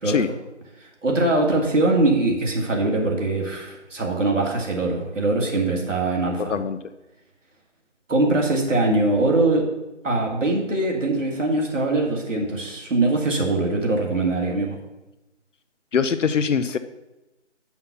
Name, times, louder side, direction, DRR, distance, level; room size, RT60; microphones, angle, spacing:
voice 1, 1.0-6.6 8.1-9.6 10.0-14.8, right 2 dB, 85° right, 0 dB, 2.1 m, -22 dB
voice 2, 15.9-16.8, left 6 dB, 80° left, 12 dB, 0.6 m, -22 dB
5.9 x 5.8 x 5.5 m, 0.98 s
figure-of-eight pair, 175°, 37 cm